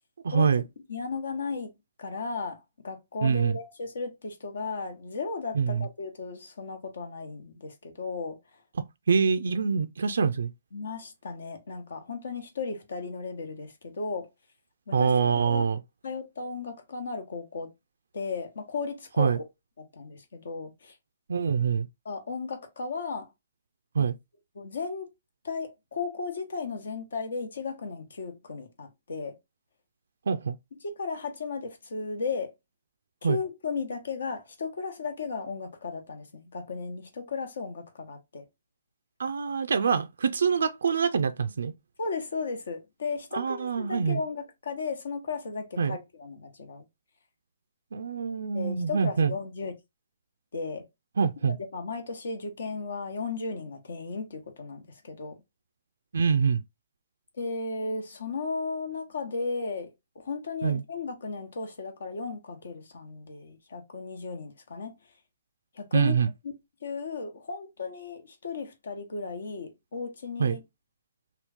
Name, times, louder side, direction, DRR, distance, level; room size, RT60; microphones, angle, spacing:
voice 1, 0.2-0.6 3.2-3.6 5.5-5.8 9.1-10.5 14.9-15.8 19.2-19.4 21.3-21.9 24.0-24.2 30.3-30.6 33.2-33.4 39.2-41.7 43.3-44.2 45.8-46.0 47.9-49.3 51.2-51.6 56.1-56.6 60.6-60.8 65.9-66.3 70.4-70.6, right 6 dB, 80° right, 0.3 m, -25 dB
voice 2, 0.9-1.7 2.0-8.4 10.7-14.3 14.9-15.6 16.0-17.7 18.1-19.4 19.8-21.0 22.0-23.3 24.0-24.1 24.5-25.1 25.4-29.4 30.8-32.5 33.2-38.4 42.0-46.8 48.5-49.7 50.5-50.8 51.4-55.4 57.4-64.9 65.7-66.2 66.8-70.6, left 4 dB, 80° left, 1.0 m, -35 dB
3.0 x 2.3 x 3.4 m
hypercardioid pair, 155°, 0 cm